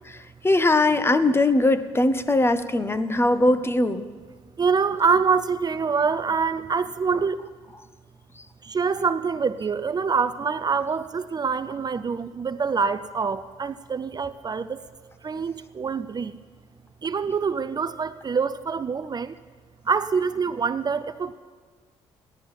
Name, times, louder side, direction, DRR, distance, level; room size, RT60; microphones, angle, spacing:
voice 1, 0.4-4.1, left 2 dB, 20° left, 12 dB, 0.9 m, -20 dB
voice 2, 4.6-7.5 8.6-14.8 15.2-16.4 17.0-19.3 19.9-21.3, right 5 dB, 35° right, 12 dB, 0.6 m, -25 dB
15.0 x 11.0 x 5.6 m, 1.5 s
supercardioid pair, 60°, 12 cm